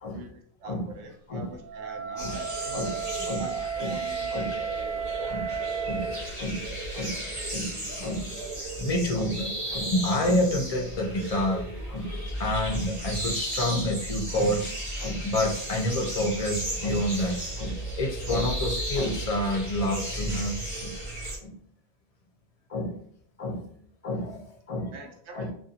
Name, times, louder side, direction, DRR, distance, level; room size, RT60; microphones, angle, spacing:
voice 1, 0.1-2.8 3.4-5.6 24.9-25.5, right 3 dB, 90° right, 2 dB, 0.9 m, -44 dB
Wind instrument woodwind instrument, 1.6-6.3, right 6 dB, 70° right, 1.0 m, -33 dB
sound 1, 2.2-21.4, right 1 dB, 30° right, 0.8 m, -34 dB
voice 2, 2.7-3.5 3.8-4.0 4.3-4.5 5.3-5.5 5.8-7.2 7.5-8.4 8.8-14.7 15.0-20.9 21.4-21.5 22.7-23.0 23.4-23.6 24.0-24.9 25.3-25.5, left 1 dB, 50° left, 0 dB, 0.4 m, -29 dB
2.6 x 2.4 x 2.7 m, 0.62 s
omnidirectional pair, 1.1 m